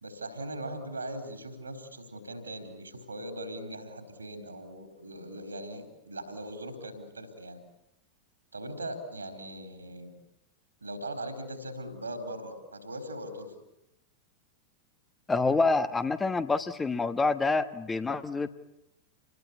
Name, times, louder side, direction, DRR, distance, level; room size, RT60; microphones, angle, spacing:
voice 1, 0.0-7.6 8.5-10.1 10.8-13.5, right 1 dB, 80° right, 8 dB, 4.3 m, -40 dB
voice 2, 15.3-18.6, left 3 dB, 15° left, 10 dB, 1.3 m, -27 dB
28.0 x 20.5 x 8.6 m, 0.85 s
figure-of-eight pair, 90°, 0 cm